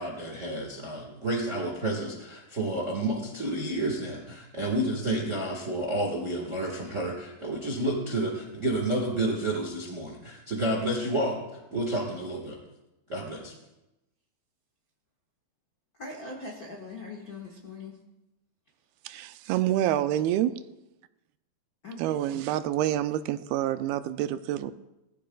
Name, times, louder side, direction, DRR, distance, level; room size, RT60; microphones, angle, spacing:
voice 1, 0.0-12.6 13.1-13.5, right 1 dB, 55° right, -1 dB, 0.8 m, -30 dB
voice 2, 16.0-18.0 21.8-22.7, left 2 dB, 65° left, -3 dB, 0.9 m, -41 dB
voice 3, 19.1-20.6 22.0-24.7, right 12 dB, 90° right, 12 dB, 2.5 m, -27 dB
19.5 x 14.5 x 2.3 m, 0.95 s
omnidirectional pair, 4.3 m